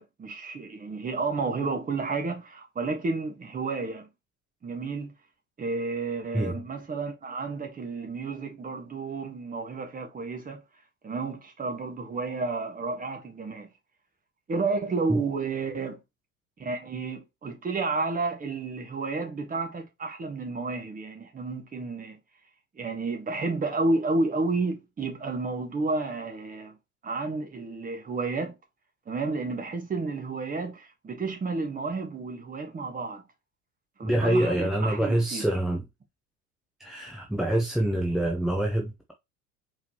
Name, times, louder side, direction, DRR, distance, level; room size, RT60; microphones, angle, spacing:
voice 1, 0.0-4.1 4.6-5.1 5.6-10.6 11.0-13.7 14.5-16.0 16.6-22.2 22.7-26.8 27.0-28.5 29.1-33.2 34.0-35.4, right 3 dB, 15° right, 1.4 m, -31 dB
voice 2, 34.0-35.9 36.8-39.1, right 1 dB, ahead, 0.5 m, -26 dB
4.7 x 3.5 x 2.9 m
figure-of-eight pair, 75°, 47 cm